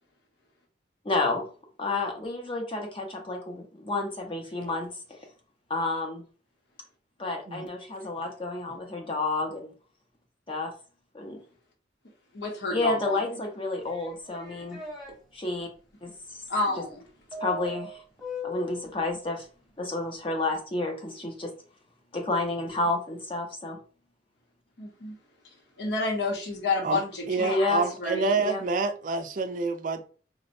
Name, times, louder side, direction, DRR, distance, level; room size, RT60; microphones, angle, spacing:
voice 1, 1.0-1.5 1.8-4.9 5.7-6.2 7.2-9.7 10.5-10.7 11.1-11.4 12.7-14.8 15.3-15.7 16.0-16.4 16.7-16.8 17.3-18.0 18.4-19.5 19.8-21.5 22.1-23.8 27.4-27.8 28.4-28.6, left 2 dB, 30° left, 0.6 m, -30 dB
voice 2, 12.3-13.2 16.5-17.0 24.8-25.1 25.8-27.7 28.0-28.3, left 3 dB, 80° left, 0.8 m, -29 dB
sound 1, 13.9-15.1 17.3-18.9, left 2 dB, ahead, 0.8 m, -39 dB
voice 3, 27.3-30.0, right 4 dB, 45° right, 0.4 m, -28 dB
4.0 x 2.0 x 2.5 m
head